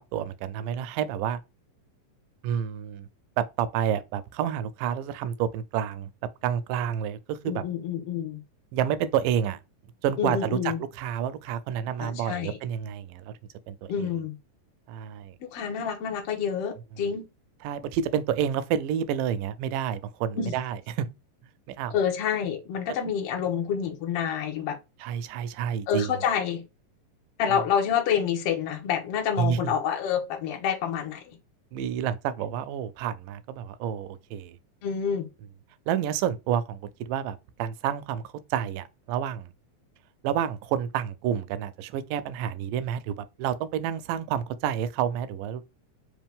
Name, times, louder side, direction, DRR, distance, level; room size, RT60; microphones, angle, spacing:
voice 1, 0.1-1.4 2.4-3.1 3.4-6.1 6.4-7.6 8.7-9.6 10.0-10.6 10.9-13.3 13.7-14.1 14.9-15.4 17.6-21.1 21.7-22.0 25.0-26.1 27.5-27.6 29.4-29.7 31.7-34.6 35.9-39.5 40.2-45.7, right 9 dB, 85° right, 2.1 m, -29 dB
voice 2, 7.4-8.4 10.2-10.8 12.0-12.6 13.9-14.3 15.4-17.3 20.4-20.5 21.9-24.8 25.9-26.6 27.4-31.4 34.8-35.3, left 8 dB, 65° left, 1.5 m, -28 dB
5.1 x 2.8 x 3.5 m
omnidirectional pair, 3.9 m